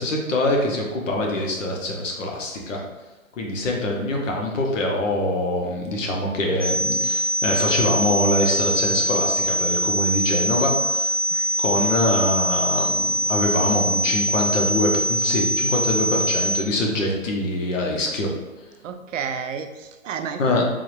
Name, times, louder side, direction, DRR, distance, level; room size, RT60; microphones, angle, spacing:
voice 1, 0.0-2.8 3.4-11.1 11.6-18.3 20.4-20.6, left 1 dB, 60° left, 0 dB, 1.0 m, -24 dB
sound 1, 6.6-16.6, equal, 10° left, 0.6 m, -23 dB
voice 2, 11.3-11.6 18.8-20.6, right 6 dB, 65° right, 8 dB, 0.5 m, -32 dB
3.7 x 2.5 x 3.2 m, 1.1 s
hypercardioid pair, 145°, 42 cm